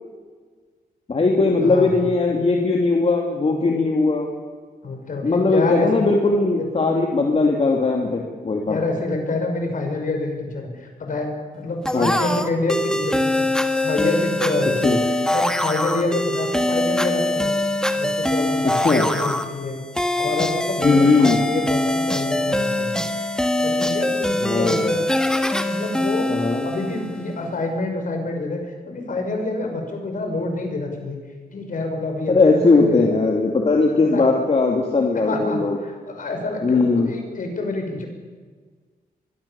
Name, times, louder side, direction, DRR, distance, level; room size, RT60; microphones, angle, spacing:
voice 1, 1.1-4.3 5.2-8.8 11.9-12.2 14.8-15.0 18.6-19.1 20.8-21.4 24.4-24.9 26.3-26.6 32.3-35.8 36.6-37.1, left 3 dB, 40° left, 0 dB, 2.8 m, -19 dB
voice 2, 1.6-2.1 4.8-6.1 6.5-6.6 8.7-13.5 13.8-15.0 15.3-17.5 17.9-19.8 20.2-23.1 23.6-25.1 25.6-26.3 26.6-31.2 31.5-33.1 33.9-34.2 35.1-38.1, left 2 dB, 60° left, 4 dB, 5.8 m, -27 dB
sound 1, 11.9-27.3, left 1 dB, 5° left, 1.5 m, -23 dB
24.0 x 22.0 x 7.2 m, 1.5 s
wide cardioid pair, 130°, 16 cm